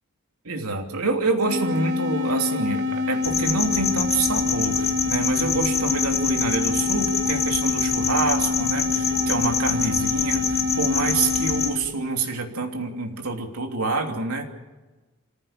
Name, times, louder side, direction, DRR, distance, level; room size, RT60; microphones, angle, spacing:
voice 1, 0.4-14.4, right 3 dB, 85° right, 3 dB, 3.0 m, -27 dB
sound 1, 1.5-11.9, left 4 dB, 60° right, 1.3 m, -26 dB
sound 2, 3.2-11.7, left 6 dB, 30° left, 2.2 m, -27 dB
27.0 x 15.5 x 7.3 m, 1.2 s
head